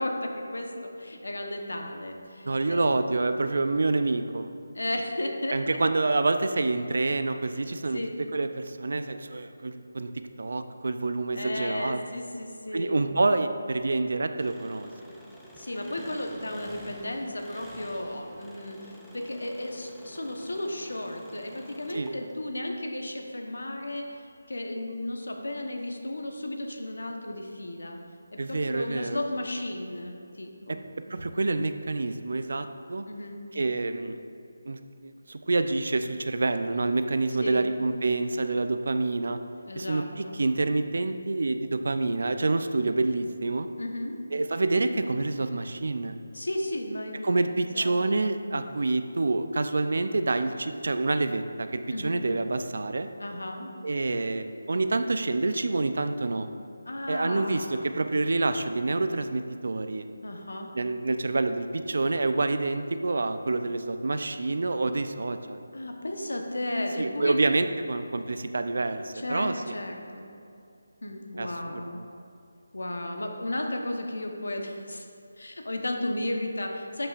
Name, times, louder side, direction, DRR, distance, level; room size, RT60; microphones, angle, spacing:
voice 1, 0.0-2.8 4.7-5.8 7.9-8.2 11.3-13.0 15.6-24.1 24.5-28.0 28.3-30.8 33.1-33.4 37.4-37.7 39.7-40.4 43.8-44.2 46.3-47.4 47.7-48.0 51.9-52.2 53.2-53.7 56.9-57.9 60.2-60.7 65.7-67.4 69.1-70.3 71.0-72.0 72.7-75.0 75.4-77.1, left 1 dB, 90° left, 3 dB, 1.0 m, -34 dB
voice 2, 2.4-4.5 5.5-8.0 8.3-10.1 10.4-12.0 12.7-14.9 21.9-22.1 28.4-29.2 30.7-30.8 31.1-33.1 33.5-34.2 34.7-39.4 39.7-43.7 44.3-46.2 47.2-53.1 53.8-56.5 57.1-60.1 60.7-65.6 67.0-69.7 71.4-72.1, right 3 dB, 65° right, 9 dB, 0.4 m, -27 dB
Engine, 14.4-22.5, equal, ahead, 0.5 m, -48 dB
12.5 x 5.4 x 2.5 m, 2.6 s
figure-of-eight pair, 165°, 0 cm